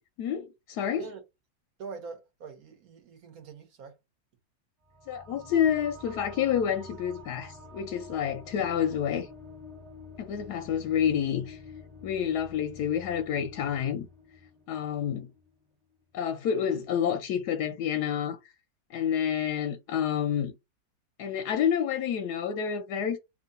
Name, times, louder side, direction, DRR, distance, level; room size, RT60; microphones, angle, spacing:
voice 1, 0.2-1.1 5.1-9.3 10.2-11.6 12.0-14.1 14.7-15.3 16.1-18.4 18.9-20.5 21.2-23.2, left 8 dB, 70° left, 1.0 m, -29 dB
voice 2, 1.8-3.9, right 5 dB, 55° right, 1.4 m, -44 dB
sound 1, 4.8-15.8, left 2 dB, 15° right, 1.4 m, -48 dB
3.1 x 2.8 x 4.0 m
omnidirectional pair, 2.0 m